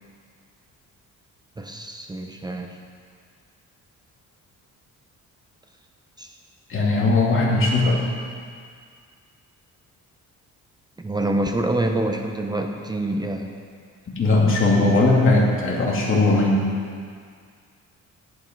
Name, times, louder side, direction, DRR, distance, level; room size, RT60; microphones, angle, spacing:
voice 1, 1.6-2.8 6.2-6.3 11.0-13.6, right 1 dB, 15° right, 4 dB, 0.7 m, -26 dB
voice 2, 6.7-8.1 14.1-16.6, left 2 dB, 40° left, -3 dB, 2.5 m, -19 dB
11.0 x 10.5 x 5.2 m, 2.1 s
cardioid pair, 140°, 30 cm